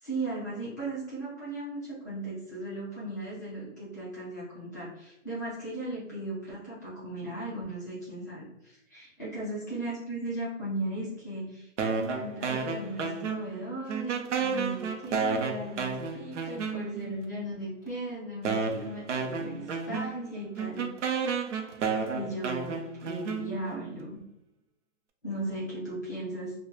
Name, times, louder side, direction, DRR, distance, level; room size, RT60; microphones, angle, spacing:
voice 1, 0.0-20.9 22.1-24.2 25.2-26.5, right 1 dB, 15° left, -9 dB, 0.5 m, -37 dB
sound 1, 11.8-13.6 13.9-17.1 17.9-18.0 18.4-23.8, right 5 dB, 75° right, 0.6 m, -31 dB
2.3 x 2.1 x 3.0 m, 0.86 s
hypercardioid pair, 170°, 37 cm